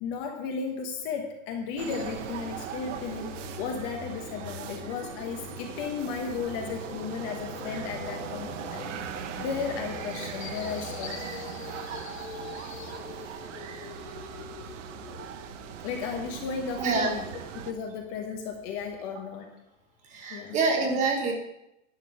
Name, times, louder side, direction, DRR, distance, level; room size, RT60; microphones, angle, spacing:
voice 1, 0.0-3.3 3.6-8.9 9.4-11.2 15.8-17.2 17.5-19.5 20.3-20.6, left 5 dB, 25° left, 3 dB, 1.1 m, -34 dB
sound 1, 1.8-17.7, right 8 dB, 60° right, 1.0 m, -39 dB
sound 2, 1.9-19.0, left 9 dB, 70° left, 0.9 m, -45 dB
voice 2, 16.8-17.2 20.0-21.3, right 4 dB, 15° right, 2 dB, 1.2 m, -26 dB
11.0 x 5.4 x 6.1 m, 0.86 s
hypercardioid pair, 160°, 42 cm